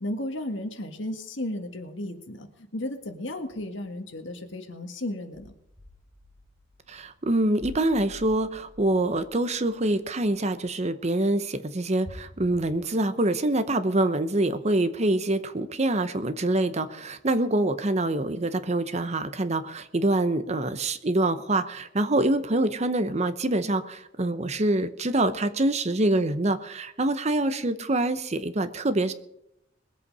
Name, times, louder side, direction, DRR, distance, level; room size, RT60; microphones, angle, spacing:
voice 1, 0.0-5.5, left 1 dB, 70° left, 6 dB, 1.7 m, -34 dB
sound 1, 3.0-3.1 3.4-3.9 4.2-4.3 5.3-10.4 12.0-12.8, equal, 10° left, 5.5 m, -48 dB
voice 2, 6.9-29.1, right 2 dB, 35° right, 11 dB, 0.8 m, -25 dB
21.0 x 8.3 x 5.4 m, 0.81 s
head